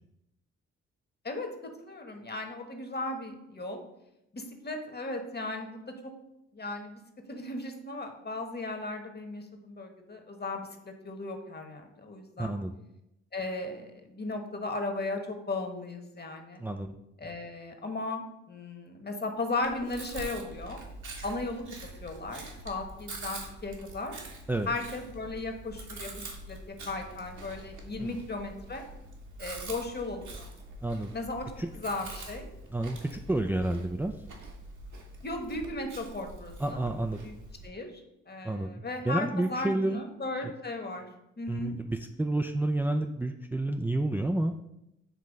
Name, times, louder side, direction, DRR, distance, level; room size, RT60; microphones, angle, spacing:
voice 1, 1.2-3.8 4.3-6.1 6.5-7.0 7.3-12.5 13.3-16.6 17.2-20.8 21.2-21.6 22.0-24.1 24.7-28.8 29.4-30.4 31.1-32.5 35.2-36.8 37.2-37.3 37.6-37.9 38.3-41.1 41.4-41.7, left 2 dB, 30° left, 4 dB, 1.3 m, -36 dB
voice 2, 12.4-12.7 16.6-16.9 24.5-24.7 28.0-28.1 30.8-31.1 31.6-31.7 32.7-34.1 36.6-37.2 38.4-40.0 41.5-44.5, right 1 dB, 5° right, 3 dB, 0.4 m, -30 dB
Chewing mastication, 19.6-37.7, right 2 dB, 70° right, 1.5 m, -45 dB
7.7 x 3.1 x 5.2 m, 0.86 s
supercardioid pair, 60°, 31 cm